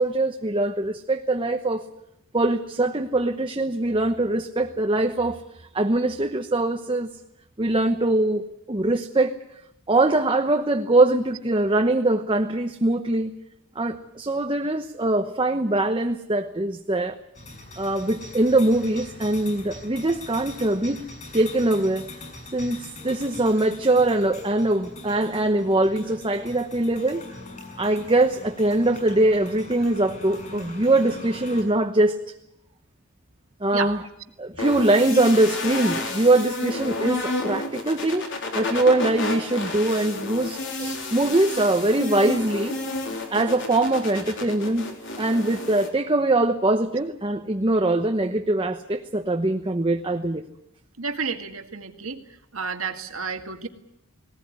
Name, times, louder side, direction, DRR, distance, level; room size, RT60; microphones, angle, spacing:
voice 1, 0.0-1.8 2.3-5.4 5.7-7.1 7.6-9.3 9.9-13.3 13.7-17.2 17.8-21.1 21.3-22.1 22.5-27.2 27.8-32.2 33.6-34.0 34.4-38.2 38.5-42.7 43.3-44.9 45.2-50.4, right 2 dB, 25° right, 4 dB, 1.0 m, -22 dB
sound 1, 17.4-31.6, left 2 dB, 35° left, 6.8 m, -41 dB
sound 2, 34.6-45.9, left 2 dB, 60° left, 4.0 m, -31 dB
voice 2, 51.0-52.2 52.5-53.7, right 5 dB, 80° right, 6 dB, 2.0 m, -31 dB
19.5 x 19.0 x 9.7 m, 0.83 s
head